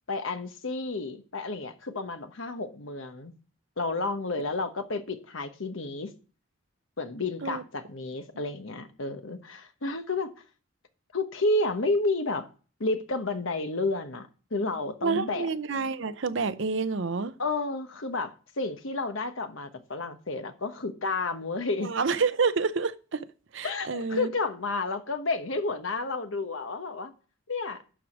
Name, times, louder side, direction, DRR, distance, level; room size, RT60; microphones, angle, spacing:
voice 1, 0.1-3.3 3.8-6.1 7.0-10.3 11.1-12.5 12.8-15.5 17.4-21.9 23.6-27.1 27.5-27.8, left 3 dB, 70° left, 1.1 m, -31 dB
voice 2, 15.0-17.4 21.8-23.3 23.5-24.3, right 4 dB, 65° right, 0.7 m, -28 dB
11.5 x 4.8 x 6.0 m
head